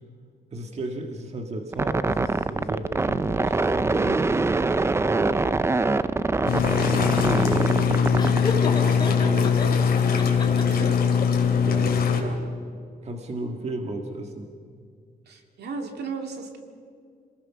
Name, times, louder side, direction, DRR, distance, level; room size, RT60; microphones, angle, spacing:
voice 1, 0.5-4.6 5.0-5.7 6.8-9.8 10.3-10.8 11.5-12.3 13.0-14.5, right 2 dB, 40° right, 3 dB, 1.8 m, -34 dB
sound 1, 1.7-8.4, right 3 dB, 15° right, 0.4 m, -24 dB
sound 2, 6.5-12.2, left 6 dB, 65° left, 3.2 m, -21 dB
Laughter, 8.2-9.7 10.1-11.0, left 3 dB, 25° left, 2.8 m, -31 dB
voice 2, 10.6-11.0 12.1-12.4 15.3-16.6, right 5 dB, 80° right, 4 dB, 2.7 m, -35 dB
28.0 x 20.0 x 6.1 m, 2.2 s
wide cardioid pair, 170°, 17 cm